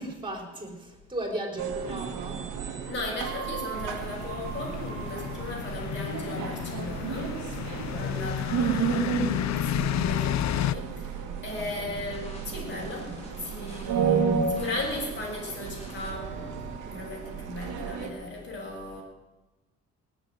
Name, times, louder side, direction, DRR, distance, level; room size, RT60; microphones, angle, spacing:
voice 1, 0.0-2.6 5.1-5.2 7.7-8.3 11.8-12.0 16.8-17.0, right 1 dB, 15° right, 2 dB, 4.5 m, -37 dB
sound 1, 1.6-18.1, right 6 dB, 80° right, 1.9 m, -32 dB
voice 2, 2.8-19.0, left 2 dB, 40° left, -3 dB, 6.6 m, -37 dB
sound 2, 3.7-10.7, left 12 dB, 65° left, 0.6 m, -31 dB
sound 3, 11.5-16.8, left 1 dB, 20° left, 3.3 m, -47 dB
19.0 x 6.8 x 9.2 m, 1.1 s
cardioid pair, 90°, 30 cm